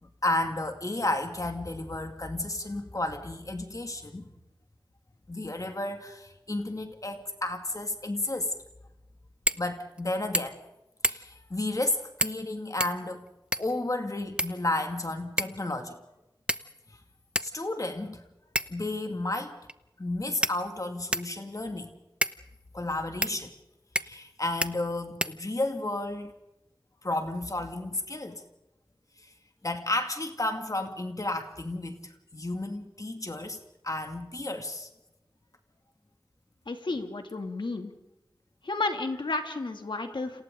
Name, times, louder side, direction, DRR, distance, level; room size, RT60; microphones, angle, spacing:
voice 1, 0.2-4.3 5.3-8.5 9.5-10.6 11.0-13.3 13.6-16.0 17.4-18.2 18.7-19.6 20.0-21.9 22.7-23.5 24.0-26.3 27.0-28.4 29.2-29.3 29.6-33.6 33.8-34.9, left 2 dB, 45° left, 5 dB, 2.4 m, -32 dB
sound 1, 9.5-9.7 10.0-10.1 10.3-10.7 11.0-11.4 12.2-12.5 12.8-13.8 14.4-15.0 15.4-15.7 16.5-16.9 17.4-17.5 18.6-18.9 19.7-19.8 20.4-21.4 22.2-22.4 23.2-23.4 24.0-24.3 24.6-24.7 25.2-25.8, right 1 dB, 15° right, 0.9 m, -30 dB
voice 2, 36.7-37.9 38.6-40.4, left 3 dB, 85° left, 5 dB, 2.7 m, -32 dB
30.0 x 28.0 x 3.9 m, 0.92 s
wide cardioid pair, 65°, 8 cm